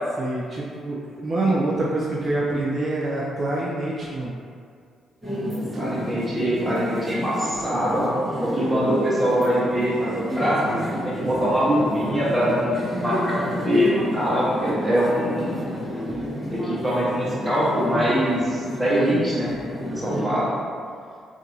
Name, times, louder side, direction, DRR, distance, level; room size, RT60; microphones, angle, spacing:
voice 1, 0.2-4.3 19.9-20.4, right 2 dB, 40° right, -4 dB, 0.4 m, -26 dB
sound 1, 5.2-20.2, equal, 10° left, 1.1 m, -30 dB
voice 2, 5.7-8.1 8.4-10.6 11.0-15.7 16.5-19.5 19.9-20.5, equal, 5° right, -9 dB, 1.0 m, -23 dB
2.7 x 2.6 x 2.5 m, 2.2 s
cardioid pair, 90°, 0 cm